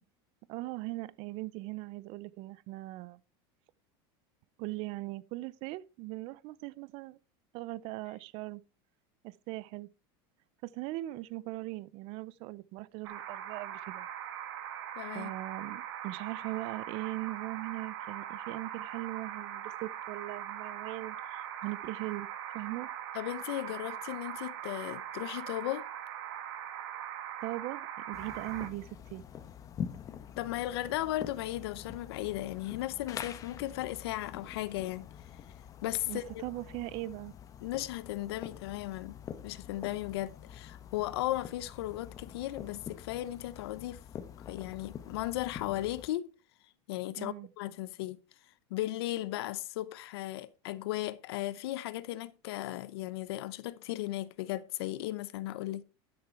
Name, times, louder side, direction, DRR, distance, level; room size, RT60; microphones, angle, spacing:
voice 1, 0.5-3.2 4.6-7.2 7.5-8.6 9.2-9.9 10.6-14.1 15.1-22.3 22.5-22.9 27.4-29.2 36.1-37.3 47.2-47.5, right 19 dB, 50° right, 0.5 m, -40 dB
sound 1, 13.0-28.7, right 10 dB, 80° right, 2.0 m, -41 dB
voice 2, 15.0-15.3 23.1-25.9 30.4-35.1 35.8-36.4 37.6-39.2 39.4-44.0 44.5-46.3 46.9-48.2 48.7-55.8, left 15 dB, 80° left, 0.8 m, -36 dB
sound 2, 28.1-46.1, left 8 dB, 25° left, 0.9 m, -46 dB
11.5 x 6.8 x 4.5 m
supercardioid pair, 150°, 13 cm